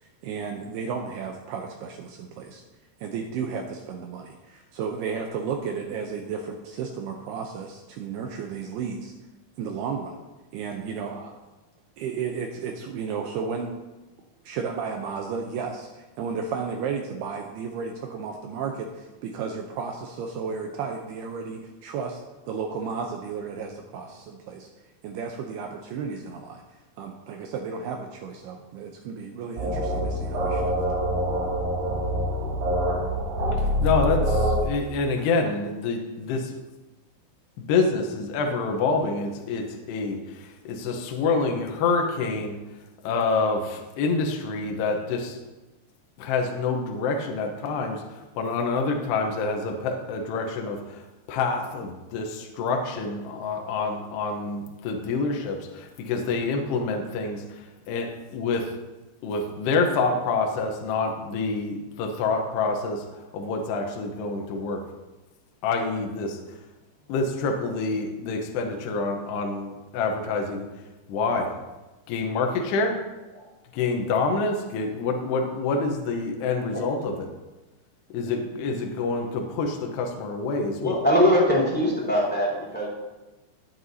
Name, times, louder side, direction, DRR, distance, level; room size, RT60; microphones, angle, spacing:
voice 1, 0.0-2.6 3.0-9.1 9.6-10.2 10.5-11.3 12.0-13.7 14.4-24.7 25.0-26.6 27.0-30.8, right 6 dB, 80° right, 2 dB, 2.4 m, -33 dB
sound 1, 29.6-34.6, equal, 55° right, 3.9 m, -25 dB
voice 2, 33.5-36.5 37.6-42.6 43.0-45.4 46.2-58.7 59.2-64.8 65.6-66.4 67.1-70.7 71.1-71.5 72.1-73.0 73.7-77.1 78.1-81.0, left 4 dB, 75° left, 2 dB, 2.8 m, -27 dB
voice 3, 80.8-82.9, equal, ahead, -5 dB, 3.2 m, -21 dB
18.5 x 7.8 x 2.7 m, 1.1 s
omnidirectional pair, 5.4 m